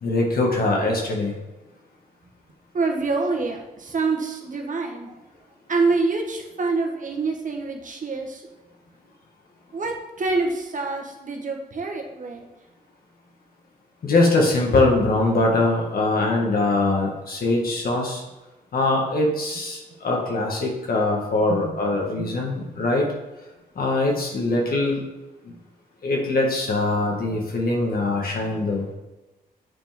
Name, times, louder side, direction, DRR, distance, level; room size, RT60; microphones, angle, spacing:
voice 1, 0.0-1.4 14.0-18.2 18.7-23.1 23.8-25.0 25.4-25.5 26.0-28.9, left 2 dB, 65° left, 0 dB, 2.0 m, -22 dB
voice 2, 2.7-5.2 5.7-8.4 9.7-12.5 21.5-21.8 22.2-22.3, right 3 dB, 50° right, 2 dB, 1.3 m, -26 dB
8.8 x 4.4 x 3.7 m, 1.0 s
cardioid pair, 65°, 17 cm